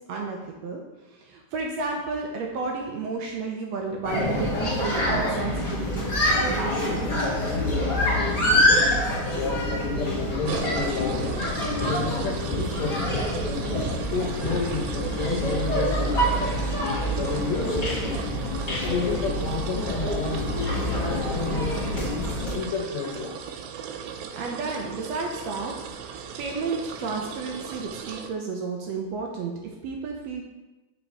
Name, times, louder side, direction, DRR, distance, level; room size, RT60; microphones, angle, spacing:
voice 1, 0.1-0.8 1.1-7.2 24.3-25.7 26.4-30.4, right 4 dB, 75° right, 1 dB, 1.7 m, -32 dB
sound 1, 4.0-22.6, left 1 dB, 30° left, 0.8 m, -26 dB
voice 2, 8.6-11.5 11.8-13.1 14.1-16.4 17.1-18.0 18.7-20.5 20.9-21.9 22.3-23.7, left 4 dB, 70° left, 1 dB, 2.1 m, -31 dB
sound 2, 10.5-28.3, right 7 dB, 90° right, 2.1 m, -38 dB
7.2 x 4.6 x 4.1 m, 1.1 s
omnidirectional pair, 3.4 m